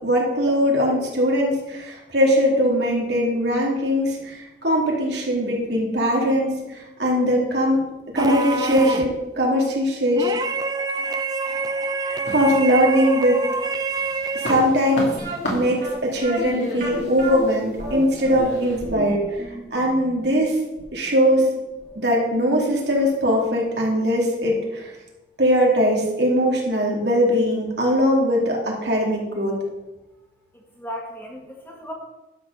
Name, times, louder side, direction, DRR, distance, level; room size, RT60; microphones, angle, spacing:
voice 1, 0.0-7.8 8.1-10.3 12.0-13.4 14.3-15.1 15.5-19.4 19.7-20.6 20.9-21.5 22.0-24.9 25.4-29.5, equal, 75° right, -2 dB, 2.7 m, -21 dB
sound 1, 8.2-9.2 10.2-14.8, right 3 dB, 20° right, 0.5 m, -26 dB
sound 2, 12.3-13.3 13.7-18.8, equal, 80° left, 2.7 m, -33 dB
sound 3, 15.2-22.0 22.3-22.4 23.0-23.1 23.4-23.5, right 1 dB, 45° right, 2.6 m, -32 dB
voice 2, 30.5-31.9, equal, 10° left, -1 dB, 1.7 m, -36 dB
11.5 x 4.3 x 6.9 m, 1.0 s
head